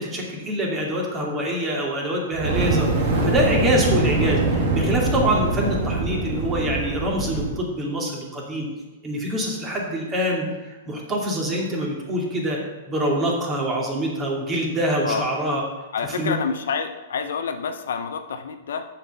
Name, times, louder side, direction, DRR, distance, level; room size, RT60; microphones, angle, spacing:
voice 1, 0.0-8.7 9.0-12.6 12.9-15.6 16.0-16.3, equal, 20° right, -1 dB, 2.6 m, -25 dB
Fire, 2.3-7.6, right 2 dB, 50° right, 2.2 m, -23 dB
voice 2, 15.9-18.9, left 6 dB, 75° left, 8 dB, 0.8 m, -28 dB
7.1 x 5.8 x 6.8 m, 1.2 s
hypercardioid pair, 125°, 0 cm